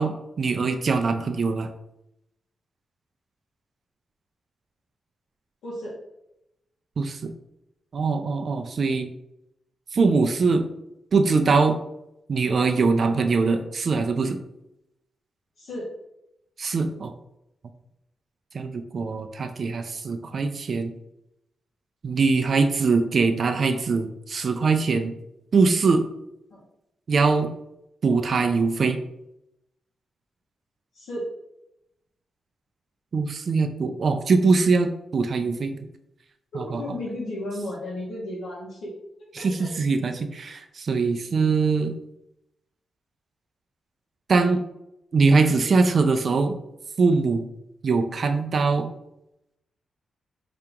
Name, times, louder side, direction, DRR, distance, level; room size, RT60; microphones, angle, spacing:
voice 1, 0.0-1.7 7.0-7.3 7.9-9.1 9.9-10.7 11.1-11.8 12.3-14.4 16.6-17.1 18.5-20.9 22.0-25.2 25.5-26.0 27.1-27.5 28.0-29.0 33.1-35.8 36.6-36.8 39.4-41.9 44.3-44.6 45.1-46.6 47.0-47.5 47.8-48.9, right 4 dB, 40° right, 7 dB, 0.4 m, -22 dB
voice 2, 5.6-6.0 15.6-15.9 26.5-26.6 30.9-31.3 36.5-38.9 39.4-39.7, left 1 dB, 80° left, -7 dB, 1.1 m, -34 dB
4.9 x 2.9 x 3.5 m, 0.85 s
wide cardioid pair, 170°, 0 cm